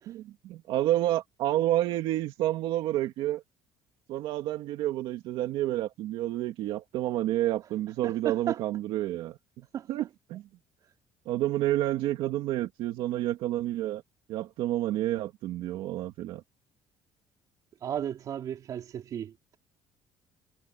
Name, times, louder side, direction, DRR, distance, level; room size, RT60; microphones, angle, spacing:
voice 1, 0.1-3.4 4.1-10.4 11.3-14.0 14.3-16.4, right 14 dB, 70° right, 2.2 m, -29 dB
voice 2, 8.0-8.6 9.7-10.1 17.8-19.6, right 9 dB, 40° right, 3.2 m, -35 dB
cardioid pair, 175°, 9 cm